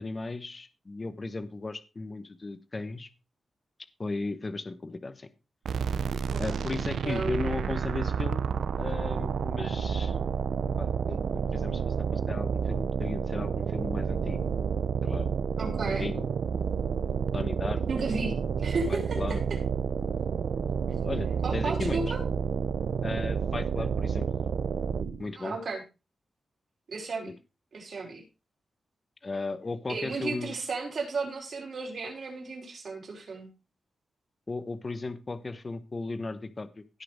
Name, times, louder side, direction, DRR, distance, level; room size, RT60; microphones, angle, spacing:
voice 1, 0.0-3.1 4.0-5.3 6.4-8.5 8.8-10.2 10.8-14.4 15.0-15.3 15.9-16.3 17.3-17.8 18.9-19.4 21.0-22.0 23.0-24.3 25.2-25.6 27.2-27.3 29.2-30.5 34.5-37.0, left 3 dB, 25° left, 12 dB, 1.0 m, -36 dB
sound 1, 5.6-25.3, right 6 dB, 85° right, 0.5 m, -30 dB
voice 2, 6.1-6.6 7.0-7.4 15.6-16.0 17.9-18.3 18.6-19.4 21.4-22.2 25.4-25.8 26.9-27.3 27.7-28.2 29.9-33.5, right 3 dB, 55° right, 0 dB, 5.0 m, -34 dB
16.5 x 5.8 x 4.9 m, 0.29 s
wide cardioid pair, 170°, 0 cm